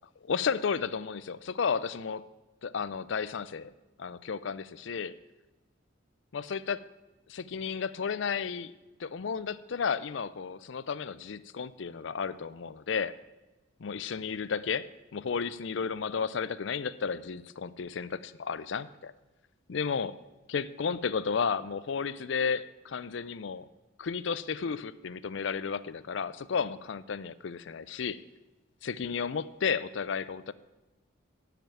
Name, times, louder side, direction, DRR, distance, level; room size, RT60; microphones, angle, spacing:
voice 1, 0.2-2.2 2.6-3.7 4.0-5.1 6.3-6.8 7.3-8.7 9.0-13.1 13.8-19.1 19.7-20.2 20.5-23.7 24.0-28.2 28.8-30.5, left 6 dB, 65° left, 17 dB, 0.5 m, -33 dB
10.5 x 6.0 x 8.6 m, 1.1 s
head